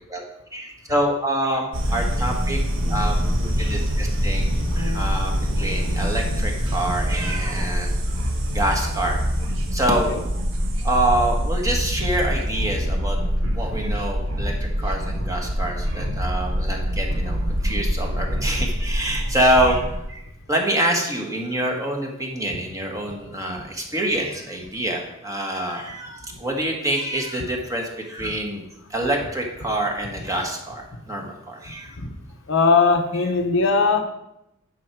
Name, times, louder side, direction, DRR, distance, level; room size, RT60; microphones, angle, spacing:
voice 1, 0.5-2.6 2.9-4.4 4.7-8.1 8.5-9.2 9.7-10.1 10.8-13.2 13.5-19.8 20.1-20.2 20.5-28.6 28.9-31.9 33.2-33.3, right 1 dB, 15° right, 1 dB, 1.4 m, -26 dB
sound 1, 1.7-20.0, equal, 65° right, 1.3 m, -24 dB
voice 2, 32.5-34.0, left 4 dB, 65° left, 5 dB, 0.9 m, -19 dB
9.7 x 5.8 x 4.6 m, 0.85 s
head